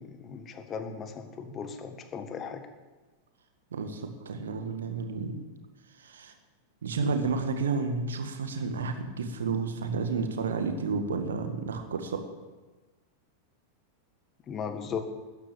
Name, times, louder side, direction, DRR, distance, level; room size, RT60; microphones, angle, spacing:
voice 1, 0.0-2.6 14.5-15.0, left 6 dB, 25° left, 7 dB, 1.8 m, -37 dB
voice 2, 3.7-5.5 6.0-6.3 6.8-12.2, right 4 dB, 65° right, 7 dB, 1.8 m, -31 dB
13.5 x 10.5 x 8.7 m, 1.2 s
figure-of-eight pair, 90°, 0 cm